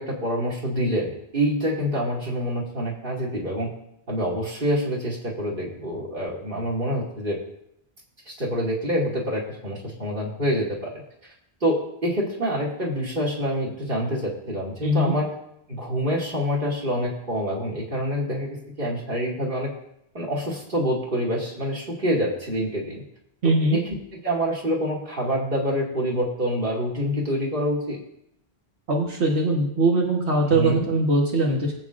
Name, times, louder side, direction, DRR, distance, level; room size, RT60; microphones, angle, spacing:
voice 1, 0.0-3.7 4.1-7.4 8.3-11.0 11.6-15.3 15.7-19.7 20.1-23.0 23.4-23.8 24.1-28.0 30.5-30.9, equal, 55° right, -3 dB, 2.6 m, -26 dB
voice 2, 14.8-15.1 23.4-23.8 28.9-31.7, right 2 dB, 85° right, -2 dB, 1.7 m, -21 dB
20.5 x 8.1 x 2.6 m, 0.78 s
omnidirectional pair, 1.1 m